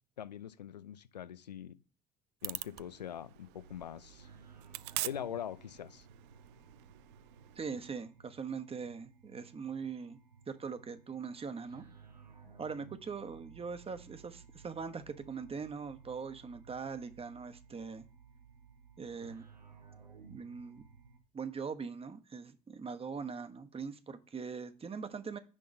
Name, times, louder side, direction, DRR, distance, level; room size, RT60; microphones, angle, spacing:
voice 1, 0.2-1.8 2.4-4.3 5.0-6.1, left 9 dB, 85° left, 0.6 m, -43 dB
sound 1, 2.4-7.9, right 19 dB, 55° right, 0.5 m, -45 dB
sound 2, 3.5-21.2, right 5 dB, 85° right, 1.4 m, -57 dB
voice 2, 7.6-10.2 10.5-11.8 12.6-18.1 19.0-19.5 20.3-20.8 21.3-25.4, right 5 dB, 30° right, 1.3 m, -41 dB
10.0 x 3.7 x 5.4 m
figure-of-eight pair, 60°, 21 cm